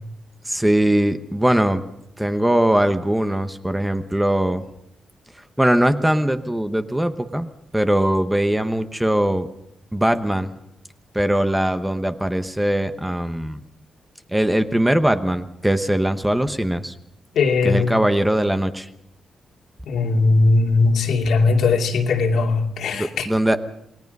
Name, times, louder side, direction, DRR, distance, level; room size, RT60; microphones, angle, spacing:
voice 1, 0.5-1.8 2.2-4.6 5.6-9.5 9.9-10.5 11.1-13.6 14.3-16.9 17.6-18.9 22.9-23.6, right 1 dB, 5° right, 1.0 m, -21 dB
voice 2, 17.4-17.9 19.9-23.3, left 3 dB, 80° left, 2.7 m, -19 dB
27.5 x 19.5 x 5.4 m
wide cardioid pair, 145°, 0 cm